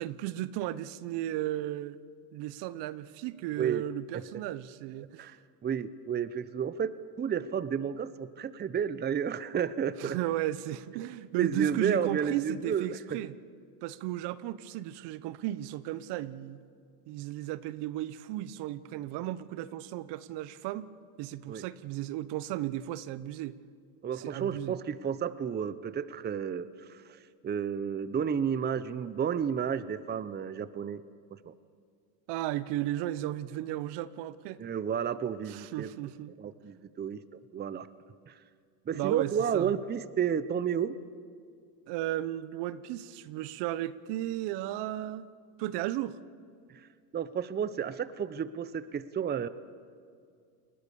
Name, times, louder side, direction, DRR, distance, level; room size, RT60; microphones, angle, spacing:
voice 1, 0.0-2.0 2.3-5.4 10.0-13.3 13.8-16.6 17.1-20.9 21.2-23.6 24.1-24.8 32.3-34.6 35.5-36.3 38.9-39.7 41.9-45.3 45.6-46.2, right 14 dB, 60° right, 1.1 m, -35 dB
voice 2, 5.6-6.9 7.2-10.2 11.4-12.9 21.5-21.6 24.0-27.2 27.4-31.0 31.5-31.6 34.6-35.9 36.4-37.9 38.3-38.4 38.9-41.0 47.1-49.5, right 7 dB, 20° right, 0.8 m, -31 dB
29.0 x 20.5 x 7.1 m
supercardioid pair, 110°, 47 cm